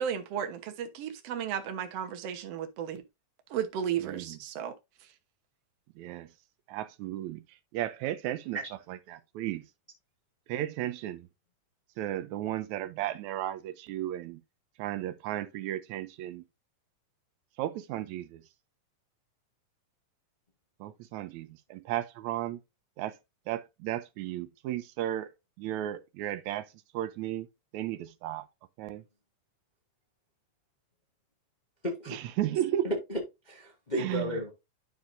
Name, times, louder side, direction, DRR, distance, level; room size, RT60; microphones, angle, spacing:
voice 1, 0.0-3.0 3.5-4.7, right 9 dB, 60° right, 1.8 m, -34 dB
voice 2, 4.0-4.4 6.0-6.3 6.7-7.4 7.7-8.6 8.9-9.7 10.5-11.3 12.0-14.4 14.8-16.4 17.6-18.4 20.8-22.6 23.0-23.2 23.5-25.3 25.6-26.7 26.9-27.5 27.7-28.5 28.8-29.0 32.1-32.9 33.9-34.4, right 13 dB, 75° right, 1.8 m, -34 dB
voice 3, 31.8-32.2 32.8-33.2 33.5-34.5, equal, 30° left, 0.8 m, -33 dB
12.0 x 4.7 x 2.6 m
omnidirectional pair, 3.9 m